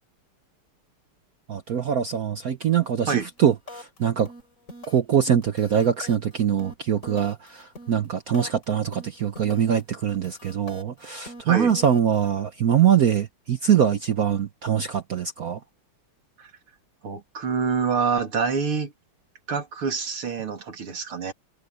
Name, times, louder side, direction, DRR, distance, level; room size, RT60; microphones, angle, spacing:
voice 1, 1.5-4.3 4.9-15.6, right 8 dB, 55° right, 1.0 m, -23 dB
sound 1, 3.1-3.4 3.7-4.0 4.3-5.1 5.4-8.6 8.9-9.8 10.1-12.3, left 1 dB, 35° left, 4.5 m, -43 dB
voice 2, 17.0-18.9 19.5-21.3, right 5 dB, 80° right, 3.7 m, -26 dB
omnidirectional pair, 2.4 m